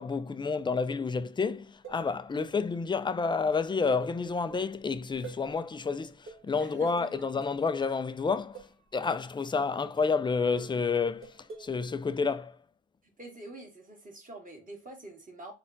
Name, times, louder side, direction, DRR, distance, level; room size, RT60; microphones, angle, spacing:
voice 1, 0.0-12.6, left 4 dB, 15° left, 0.3 m, -30 dB
sound 1, 1.5-2.5 3.5-5.5 5.9-6.0 6.3-7.7 8.5-8.9 9.7-10.3 10.6-11.8, right 5 dB, 40° right, 1.6 m, -48 dB
voice 2, 6.6-7.1 13.2-15.5, right 2 dB, 25° right, 1.8 m, -46 dB
4.2 x 2.3 x 3.8 m
cardioid pair, 90°, 30 cm